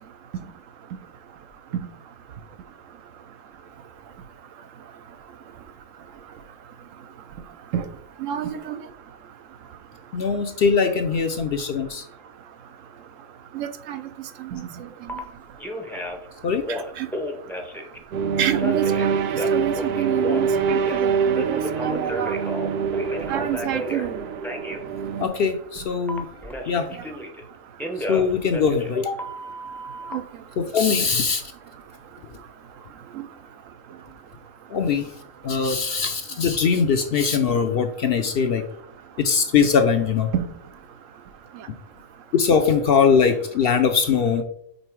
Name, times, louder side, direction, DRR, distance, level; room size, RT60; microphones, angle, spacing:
voice 1, 8.2-8.7 13.5-14.0 14.5-14.7 17.0-17.1 18.4-22.3 23.3-24.2 30.1-30.2 40.3-40.4, right 10 dB, 80° right, 10 dB, 1.0 m, -27 dB
voice 2, 10.1-12.0 16.4-16.6 25.2-26.2 26.7-26.9 28.1-29.2 30.6-31.4 34.7-35.1 35.4-38.6 39.2-40.3 42.3-44.4, left 6 dB, 60° left, 6 dB, 0.6 m, -21 dB
Telephone, 15.1-15.2 15.6-16.3 16.6-18.0 18.6-21.0 21.4-24.1 24.4-24.8 26.1-27.4 27.8-30.1, equal, ahead, 0.4 m, -33 dB
sound 1, 18.1-25.3, right 6 dB, 60° right, 0.7 m, -25 dB
5.4 x 3.9 x 4.5 m, 0.69 s
omnidirectional pair, 1.3 m